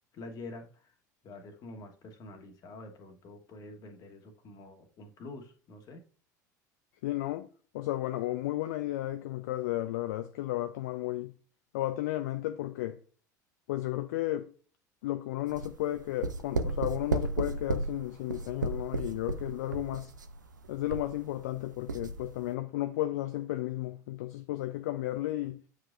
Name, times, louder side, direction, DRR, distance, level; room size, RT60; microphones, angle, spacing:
voice 1, 0.1-0.9 1.2-6.0, left 2 dB, 40° left, 1.4 m, -47 dB
voice 2, 7.0-7.5 7.7-11.3 11.7-13.0 13.7-14.5 15.0-20.1 20.7-25.6, left 15 dB, 60° left, 0.5 m, -33 dB
sound 1, 15.5-21.6 21.9-22.3, right 3 dB, 80° right, 0.5 m, -34 dB
8.4 x 4.9 x 2.6 m
figure-of-eight pair, 70°, 10 cm